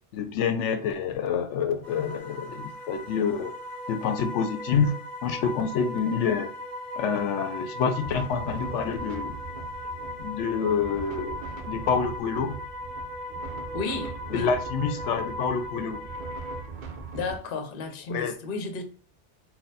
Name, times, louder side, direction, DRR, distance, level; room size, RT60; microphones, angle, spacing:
voice 1, 0.1-3.5 3.9-4.9 5.2-6.5 7.0-9.4 10.2-11.4 11.6-12.6 14.3-16.0 18.1-18.4, left 6 dB, 90° left, 0.9 m, -27 dB
sound 1, 1.8-16.6, left 1 dB, 30° right, 1.3 m, -38 dB
sound 2, 8.0-17.4, right 5 dB, 55° right, 0.6 m, -41 dB
voice 2, 13.7-14.5 17.1-18.8, left 3 dB, 55° left, 0.8 m, -33 dB
4.2 x 2.2 x 3.9 m
omnidirectional pair, 1.2 m